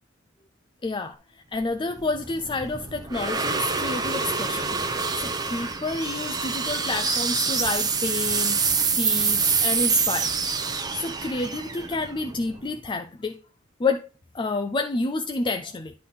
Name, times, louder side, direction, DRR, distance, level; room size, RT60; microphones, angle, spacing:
voice 1, 0.8-4.8 5.1-8.6 8.9-10.3 10.9-13.4 13.8-14.1 14.3-15.9, left 3 dB, 25° left, 0.4 m, -29 dB
sound 1, 1.6-12.9, right 5 dB, 20° right, 0.8 m, -26 dB
10.0 x 3.9 x 5.5 m
head